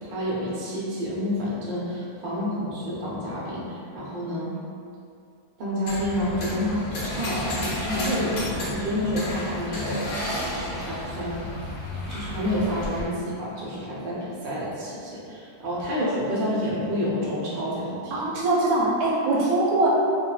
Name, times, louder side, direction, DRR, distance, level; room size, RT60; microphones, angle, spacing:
voice 1, 0.0-4.5 5.6-10.1 10.4-11.4 12.1-18.1, left 1 dB, 60° right, -7 dB, 0.5 m, -29 dB
sound 1, 5.9-13.1, left 1 dB, 90° left, 1.2 m, -32 dB
voice 2, 18.1-19.9, right 2 dB, 75° right, -4 dB, 1.0 m, -22 dB
3.4 x 2.2 x 2.3 m, 2.4 s
omnidirectional pair, 1.7 m